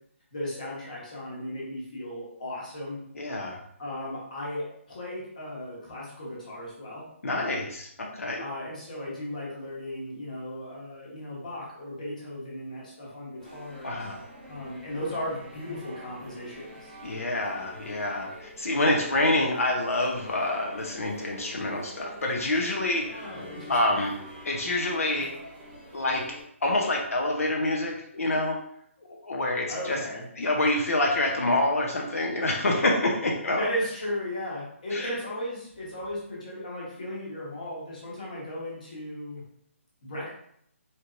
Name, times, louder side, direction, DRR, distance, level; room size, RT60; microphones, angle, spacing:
voice 1, 0.3-3.0 3.8-7.0 8.4-13.9 14.5-16.9 23.1-23.9 29.7-30.2 33.6-39.4 40.0-40.3, left 1 dB, 35° left, -5 dB, 1.2 m, -36 dB
voice 2, 3.1-3.6 7.2-8.4 13.8-14.2 17.0-23.3 23.7-24.2 24.4-25.3 25.9-26.3 26.6-28.6 29.1-30.0 30.4-33.7 34.9-35.1, left 2 dB, 80° left, 0 dB, 0.8 m, -27 dB
sound 1, 13.4-26.4, equal, 5° right, 1.1 m, -46 dB
4.3 x 3.3 x 2.6 m, 0.69 s
hypercardioid pair, 180°, 8 cm